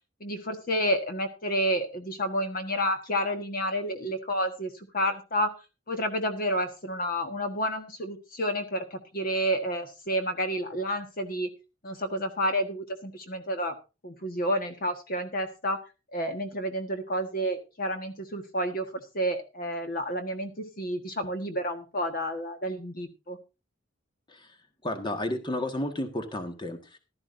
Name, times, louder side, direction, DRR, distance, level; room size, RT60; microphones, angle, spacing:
voice 1, 0.2-5.5 5.9-11.5 11.8-13.8 14.0-15.8 16.1-23.4, equal, 45° left, 7 dB, 1.4 m, -30 dB
voice 2, 24.8-27.0, left 1 dB, 20° left, 7 dB, 1.5 m, -32 dB
15.5 x 12.0 x 2.6 m, 0.29 s
head